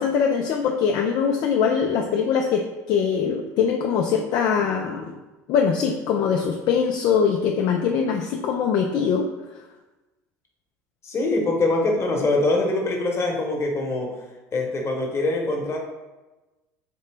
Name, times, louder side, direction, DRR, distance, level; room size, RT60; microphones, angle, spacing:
voice 1, 0.0-5.2 5.5-9.3, left 6 dB, 50° left, 2 dB, 0.4 m, -22 dB
voice 2, 11.0-14.1 14.5-15.8, left 2 dB, 30° left, 0 dB, 1.1 m, -23 dB
4.3 x 2.7 x 3.3 m, 1.1 s
hypercardioid pair, 75°, 9 cm